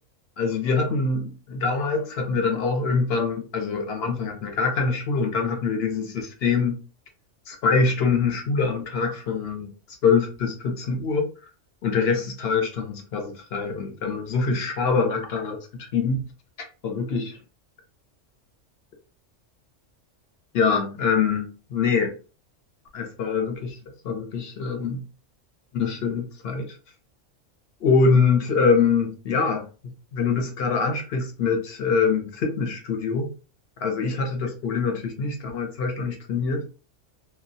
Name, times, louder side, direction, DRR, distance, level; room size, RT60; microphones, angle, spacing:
voice 1, 0.4-6.8 7.5-9.7 10.0-11.3 11.8-16.2 16.8-17.3 20.5-22.1 22.9-23.8 24.0-25.0 25.7-26.7 27.8-29.7 30.1-33.3 33.8-36.6, left 5 dB, 60° left, 0.8 m, -24 dB
2.2 x 2.1 x 2.6 m
omnidirectional pair, 1.3 m